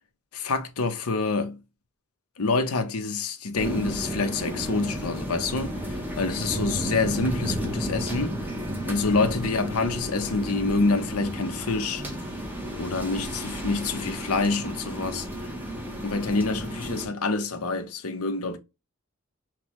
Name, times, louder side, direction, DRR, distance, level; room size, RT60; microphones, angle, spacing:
voice 1, 0.3-1.6 2.4-8.4 8.9-12.0 12.8-15.3 16.0-18.6, left 3 dB, 85° left, 0.8 m, -27 dB
sound 1, 3.6-17.1, equal, 10° right, 0.8 m, -33 dB
5.9 x 2.3 x 3.0 m
head